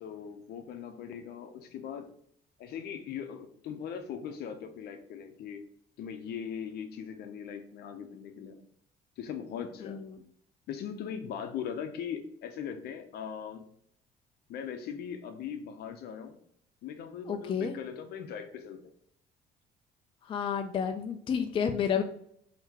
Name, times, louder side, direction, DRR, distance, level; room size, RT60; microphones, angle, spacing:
voice 1, 0.0-2.1 2.6-5.6 6.0-8.6 9.2-10.0 10.7-13.6 14.5-16.4 16.8-18.9, left 8 dB, 70° left, 6 dB, 0.6 m, -40 dB
voice 2, 17.3-17.8 20.3-22.0, left 7 dB, 30° left, 6 dB, 0.3 m, -30 dB
3.6 x 2.8 x 2.9 m, 0.67 s
cardioid pair, 110°, 17 cm